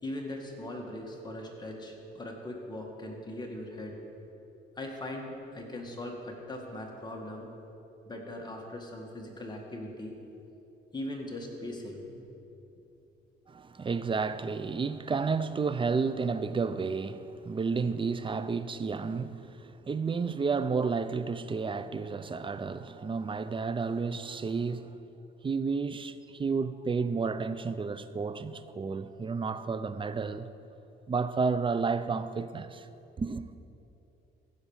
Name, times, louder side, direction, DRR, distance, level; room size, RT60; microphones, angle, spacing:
voice 1, 0.0-4.0 4.8-7.5 8.1-10.1 10.9-12.3, left 1 dB, 20° left, 2.1 m, -40 dB
voice 2, 13.5-25.0 25.4-30.5 31.1-32.9 33.2-33.4, right 5 dB, 25° right, 0.5 m, -31 dB
15.5 x 5.1 x 7.3 m
cardioid pair, 90°, 20 cm